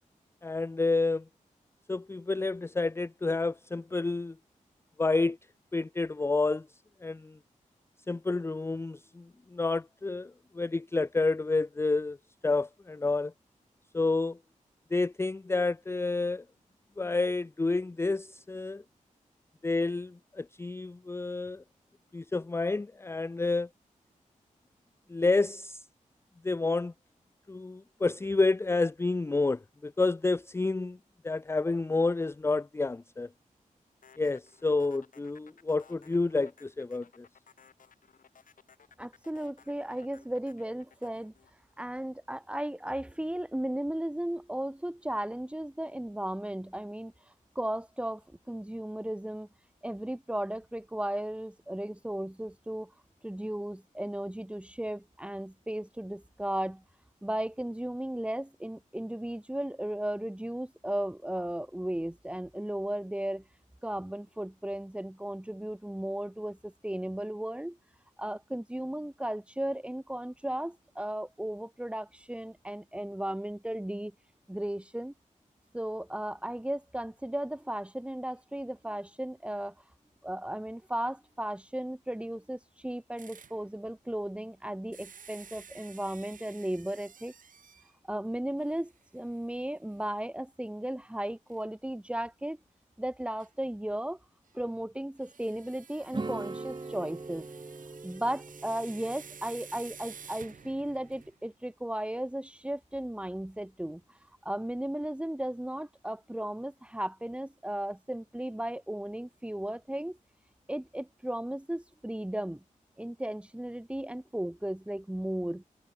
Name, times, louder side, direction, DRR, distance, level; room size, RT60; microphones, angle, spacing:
voice 1, 0.4-1.2 1.9-4.4 5.0-5.4 5.7-6.7 7.0-7.4 8.1-12.2 12.4-13.3 13.9-14.4 14.9-16.4 17.0-18.8 19.6-21.6 22.1-23.7 25.1-25.8 26.4-26.9 27.5-31.0 31.2-33.3 34.2-37.3, left 3 dB, 20° left, 0.4 m, -29 dB
sound 1, 34.0-42.4, left 6 dB, 80° left, 4.1 m, -59 dB
voice 2, 39.0-41.3 41.8-47.1 47.6-48.2 48.5-49.5 49.8-52.9 53.2-56.8 57.2-63.4 63.8-67.8 68.2-74.1 74.5-75.1 75.7-79.7 80.2-87.3 88.1-92.6 93.0-94.2 94.5-97.5 98.0-104.0 104.4-110.2 110.7-112.6 113.0-115.6, right 1 dB, 10° right, 1.9 m, -35 dB
sound 2, 83.2-83.6 84.9-87.9 88.6-88.7 89.2-89.3 91.5-91.6 93.4-93.5 95.2-101.4, right 7 dB, 80° right, 2.4 m, -51 dB
sound 3, 96.1-101.3, right 3 dB, 35° right, 2.2 m, -42 dB
cardioid pair, 70°, 14 cm